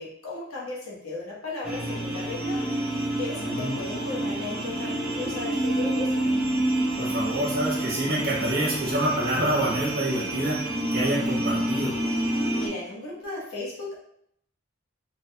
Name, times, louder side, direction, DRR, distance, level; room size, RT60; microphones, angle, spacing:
voice 1, 0.0-2.7 3.2-6.2 12.3-14.0, left 3 dB, 90° left, -4 dB, 0.9 m, -36 dB
sound 1, 1.6-12.7, right 1 dB, 5° right, 0.6 m, -28 dB
voice 2, 3.4-3.7 7.0-10.6 10.9-11.9, right 1 dB, 45° right, -5 dB, 0.8 m, -27 dB
3.0 x 2.7 x 2.2 m, 0.70 s
head